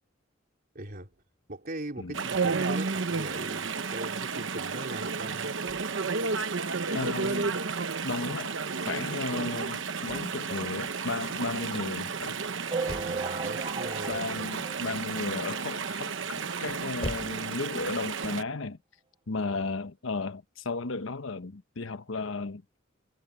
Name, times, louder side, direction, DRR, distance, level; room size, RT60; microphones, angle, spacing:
voice 1, 0.7-1.1 1.5-5.5 12.8-14.5 19.5-19.7, right 1 dB, 45° right, 3.8 m, -40 dB
sound 1, 0.9-17.7, left 1 dB, 30° left, 6.2 m, -47 dB
Chatter / Stream, 2.1-18.4, right 5 dB, 65° right, 1.1 m, -32 dB
voice 2, 6.9-7.6 8.0-8.6 8.8-12.4 14.1-18.8 19.3-22.6, left 3 dB, 80° left, 1.0 m, -34 dB
sound 2, 12.7-15.6 16.0-16.1 16.3-16.5 16.8-16.9 17.7-17.8 18.3-18.4, right 4 dB, 25° right, 1.0 m, -36 dB
head